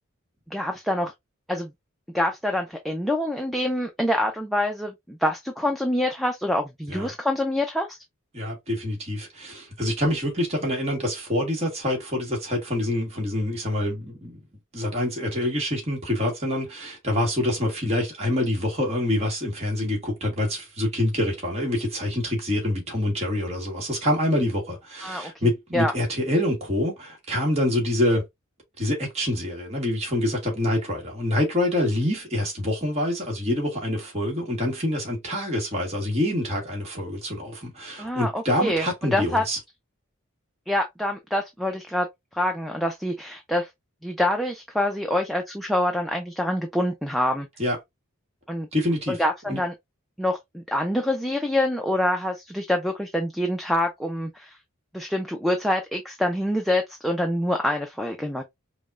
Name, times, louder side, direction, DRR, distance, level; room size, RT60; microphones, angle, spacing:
voice 1, 0.5-1.1 1.5-1.7 2.1-8.0 25.0-25.9 38.0-39.4 40.7-42.1 42.3-43.7 44.0-47.5 48.5-48.7 49.1-49.7 50.2-54.6 54.9-58.4, left 1 dB, ahead, 0.4 m, -26 dB
voice 2, 8.3-14.4 14.7-28.2 28.8-39.6 47.6-47.8 48.7-49.2 49.5-49.6, left 1 dB, 30° right, 1.2 m, -26 dB
5.1 x 2.2 x 2.4 m
head